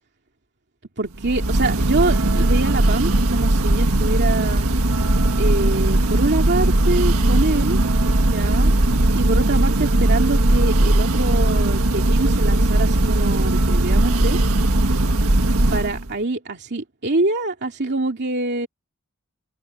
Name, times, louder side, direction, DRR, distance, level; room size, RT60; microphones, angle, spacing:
voice 1, 1.0-4.7 5.4-7.8 8.2-8.7 9.1-14.4 15.7-18.7, right 2 dB, 50° right, 2.4 m, -25 dB
Church bell, 1.2-16.1, right 1 dB, 80° right, 1.6 m, -18 dB
open air
head